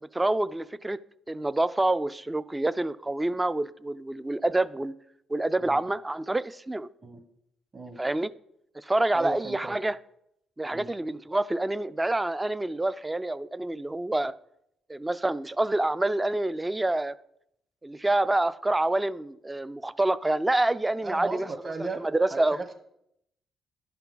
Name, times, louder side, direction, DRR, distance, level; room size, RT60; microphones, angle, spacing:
voice 1, 0.1-1.0 1.3-4.9 5.3-6.9 8.0-8.3 8.8-10.0 10.6-14.3 14.9-17.2 17.8-21.5 22.0-22.6, right 2 dB, 15° right, 16 dB, 0.3 m, -27 dB
voice 2, 9.1-9.8 10.7-10.9 21.0-22.7, right 3 dB, 35° right, 5 dB, 1.4 m, -36 dB
11.5 x 5.8 x 3.9 m, 0.78 s
cardioid pair, 90°, 0 cm